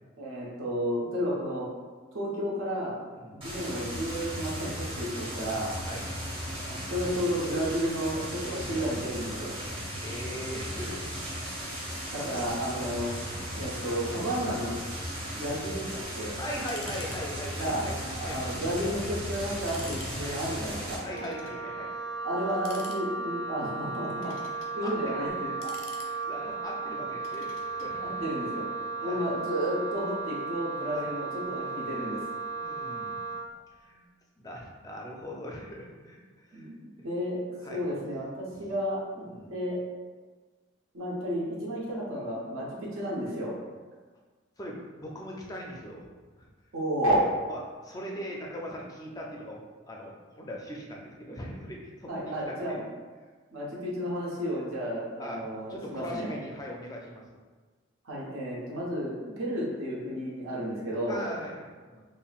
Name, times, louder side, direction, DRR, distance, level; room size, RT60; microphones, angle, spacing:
voice 1, 0.2-1.7 2.1-3.0 3.3-5.7 6.6-9.5 12.1-13.1 13.5-14.8 15.3-16.4 17.6-17.8 18.2-21.0 22.2-24.3 24.7-25.7 28.0-28.7 29.0-32.2 36.5-36.7 37.0-37.4 37.7-39.8 40.9-43.5 46.7-47.2 52.1-52.9 53.5-56.4 58.0-61.2, equal, 85° right, -6 dB, 0.9 m, -32 dB
sound 1, 3.4-21.0, equal, 25° right, 0.8 m, -36 dB
voice 2, 10.0-12.5 12.8-12.9 16.3-18.6 21.0-21.9 24.2-25.2 26.0-28.2 29.0-29.3 30.9-31.1 31.9-32.0 32.6-33.3 33.7-34.0 34.4-36.7 37.0-37.1 37.6-37.9 38.6-38.7 39.3-39.5 44.6-46.1 46.4-46.5 47.5-52.8 55.2-57.2 61.1-62.0, equal, 15° left, -1 dB, 0.4 m, -40 dB
sound 2, 16.6-17.2 17.5-17.6 18.2-18.6 19.0-19.1 19.5-20.1 21.0-21.6 22.5-23.4 23.9-24.7 25.4-26.5 27.2-27.9, left 3 dB, 85° left, 0.6 m, -47 dB
Wind instrument woodwind instrument, 21.0-33.5, right 3 dB, 65° right, 0.3 m, -35 dB
5.4 x 2.1 x 2.4 m, 1.4 s
head